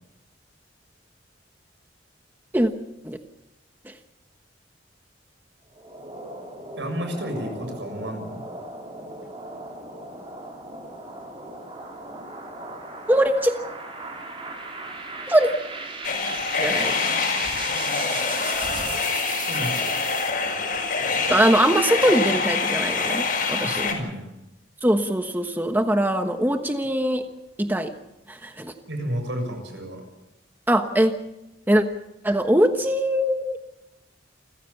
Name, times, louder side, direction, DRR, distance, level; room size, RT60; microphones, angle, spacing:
sound 1, 5.7-20.3, right 3 dB, 30° right, 4.8 m, -37 dB
voice 1, 6.8-8.4 19.5-20.0 23.6-24.3 28.9-30.0, equal, 80° right, 5 dB, 7.0 m, -31 dB
voice 2, 13.1-13.5 15.3-15.5 16.6-17.0 21.3-23.9 24.8-27.3 27.6-27.9 28.3-28.7 30.7-31.1 31.7-31.8 32.2-33.6, right 1 dB, 10° right, 6 dB, 1.2 m, -21 dB
sound 2, 16.0-23.9, left 4 dB, 50° left, 5.7 m, -25 dB
29.0 x 15.5 x 7.1 m, 0.91 s
head